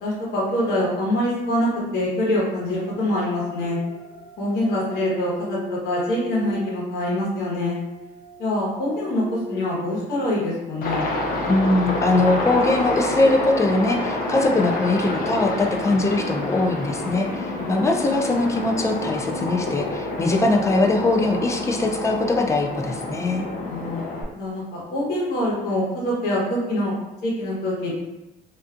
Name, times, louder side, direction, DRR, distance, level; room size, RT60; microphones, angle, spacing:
voice 1, 0.0-3.8 4.4-7.8 8.4-11.1 17.4-17.8 23.6-24.0 24.3-26.9 27.2-27.9, left 1 dB, 70° left, -5 dB, 1.1 m, -25 dB
sound 1, 2.2-14.0, left 1 dB, 35° left, 1.0 m, -39 dB
Aircraft, 10.8-24.2, left 2 dB, 55° left, 0.6 m, -28 dB
voice 2, 11.5-23.5, left 2 dB, 20° left, 2 dB, 0.3 m, -21 dB
2.5 x 2.3 x 2.4 m, 0.97 s
cardioid pair, 110°, 17 cm